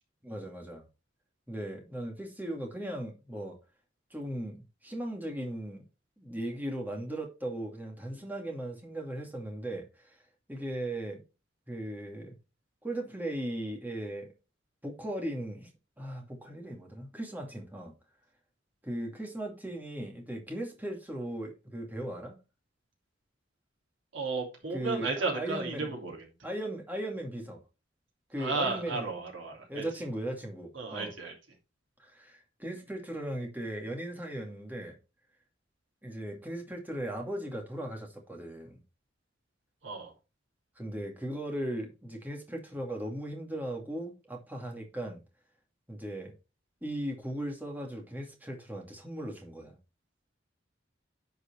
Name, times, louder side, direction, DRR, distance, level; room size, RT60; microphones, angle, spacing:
voice 1, 0.2-0.9 1.5-3.6 4.1-5.8 6.2-10.2 10.5-11.2 11.7-12.4 12.8-14.3 14.8-15.7 16.0-18.0 18.8-22.4 24.7-25.9 26.4-27.6 28.3-29.2 29.7-31.1 32.0-35.0 36.0-38.8 40.8-45.2 45.9-46.3 46.8-49.8, right 1 dB, 10° right, 2.4 m, -37 dB
voice 2, 24.1-26.1 28.4-29.8 30.7-31.3 39.8-40.1, right 3 dB, 85° right, 3.2 m, -33 dB
10.0 x 5.0 x 4.4 m
head